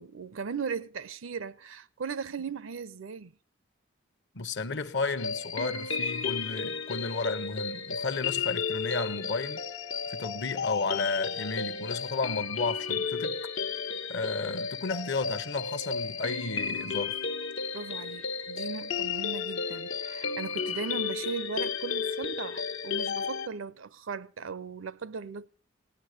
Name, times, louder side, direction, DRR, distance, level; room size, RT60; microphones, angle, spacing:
voice 1, 0.0-3.4 17.7-25.5, right 5 dB, 80° right, 0.6 m, -38 dB
voice 2, 4.3-9.6 10.1-13.4 14.1-17.2, left 3 dB, 60° left, 0.8 m, -33 dB
sound 1, 5.2-23.5, left 5 dB, 80° left, 1.1 m, -33 dB
17.0 x 9.8 x 6.5 m
head